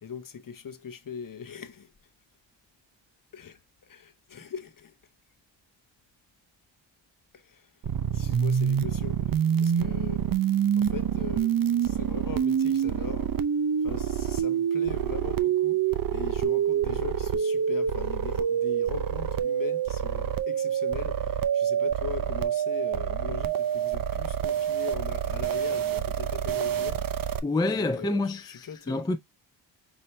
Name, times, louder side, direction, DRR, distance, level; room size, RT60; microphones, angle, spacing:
voice 1, 0.0-1.9 3.3-4.9 7.3-7.7 8.1-10.3 10.8-11.5 11.8-13.3 13.8-27.2 27.6-29.1, left 7 dB, 45° left, 0.9 m, -40 dB
sound 1, 7.8-27.4, right 8 dB, 50° right, 0.6 m, -27 dB
voice 2, 27.4-29.2, left 2 dB, 10° left, 0.4 m, -28 dB
5.8 x 2.8 x 3.1 m
cardioid pair, 70°, 46 cm